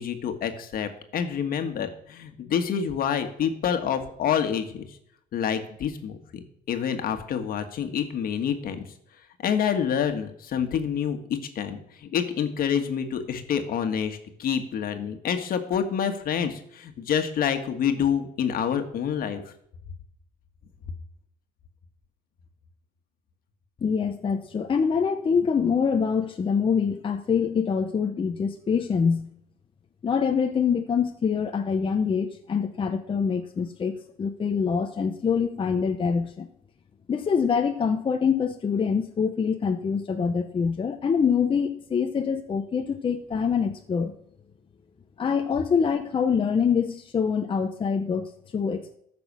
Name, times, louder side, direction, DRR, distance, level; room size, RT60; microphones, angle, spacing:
voice 1, 0.0-4.9 5.3-6.4 6.7-8.8 9.4-19.4, left 8 dB, 60° left, 7 dB, 1.7 m, -27 dB
voice 2, 23.8-29.3 30.0-36.5 37.1-44.1 45.2-49.0, left 6 dB, 30° left, 5 dB, 0.9 m, -25 dB
14.0 x 6.1 x 6.2 m, 0.72 s
cardioid pair, 110°, 17 cm